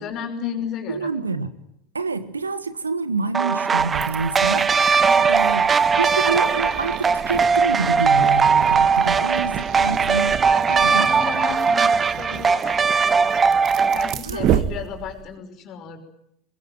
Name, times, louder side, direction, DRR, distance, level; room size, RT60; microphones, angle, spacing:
voice 1, 0.0-1.0 5.1-5.5 10.4-16.0, left 7 dB, 45° left, 5.5 m, -34 dB
voice 2, 0.9-1.5 1.9-5.7 6.0-11.1 14.2-14.6, right 4 dB, 85° right, 1.5 m, -27 dB
sound 1, 3.3-14.1, right 5 dB, 25° right, 0.9 m, -19 dB
sound 2, 3.8-15.3, right 10 dB, 45° right, 1.4 m, -31 dB
22.5 x 21.0 x 9.2 m
figure-of-eight pair, 80°, 0 cm